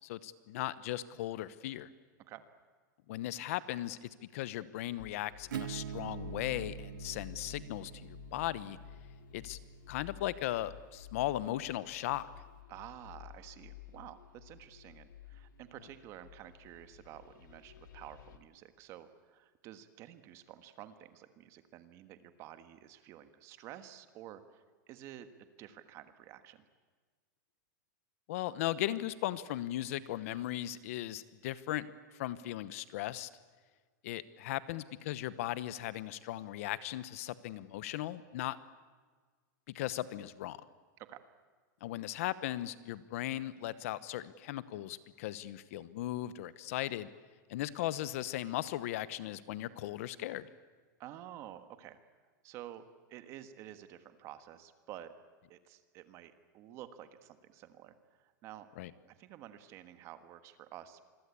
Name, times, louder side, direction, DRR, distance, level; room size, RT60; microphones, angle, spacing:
voice 1, 0.0-1.9 3.1-8.8 9.3-9.6 9.9-12.3 28.3-31.9 32.1-33.3 34.0-38.6 39.7-40.6 41.8-47.1 47.5-50.5 58.8-58.9, left 14 dB, 45° left, 16 dB, 1.0 m, -37 dB
sound 1, 5.0-18.4, left 12 dB, 80° left, 2.5 m, -52 dB
Acoustic guitar / Strum, 5.5-11.0, right 10 dB, 85° right, 0.9 m, -45 dB
voice 2, 12.7-26.6 41.0-41.2 51.0-52.0 52.4-52.8 53.1-55.1 55.5-58.7 59.1-61.0, right 12 dB, 30° right, 10 dB, 1.5 m, -51 dB
27.0 x 21.5 x 8.4 m, 1.5 s
supercardioid pair, 170°, 10 cm